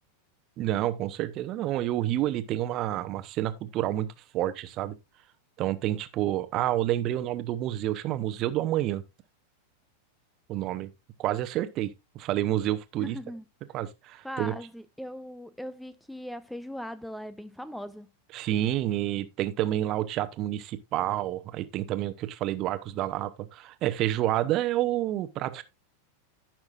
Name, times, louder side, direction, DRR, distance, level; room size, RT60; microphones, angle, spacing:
voice 1, 0.6-4.1 4.3-5.0 5.6-9.0 10.5-10.9 11.2-13.2 13.7-14.5 18.3-25.6, right 13 dB, 35° right, 0.8 m, -29 dB
voice 2, 13.0-13.4 14.2-18.1, equal, ahead, 0.4 m, -39 dB
14.5 x 6.0 x 2.5 m
figure-of-eight pair, 90°, 0 cm